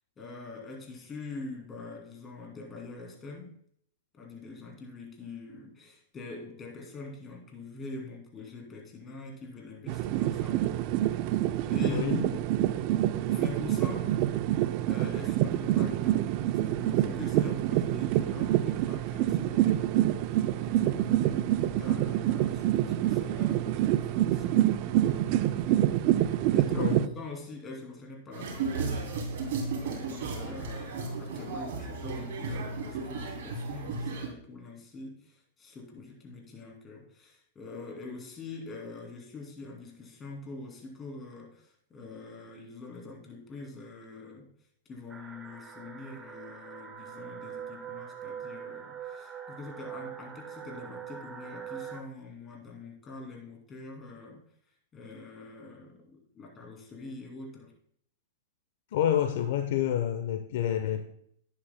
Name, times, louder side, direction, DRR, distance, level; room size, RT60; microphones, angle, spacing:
voice 1, 0.2-3.5 4.1-10.6 11.1-12.6 13.3-14.2 14.9-25.9 26.5-44.5 44.9-54.4 54.9-57.7, left 3 dB, 20° left, 0 dB, 2.7 m, -44 dB
sound 1, 9.9-27.1, right 13 dB, 50° right, 0.5 m, -27 dB
voice 2, 11.8-12.2 26.7-27.0 58.9-61.0, left 10 dB, 65° left, 7 dB, 0.8 m, -28 dB
sound 2, 28.3-34.3, right 4 dB, 65° right, 3.0 m, -34 dB
sound 3, 45.1-52.0, right 8 dB, 15° right, 0.9 m, -43 dB
11.0 x 9.6 x 2.2 m, 0.66 s
hypercardioid pair, 125°, 0 cm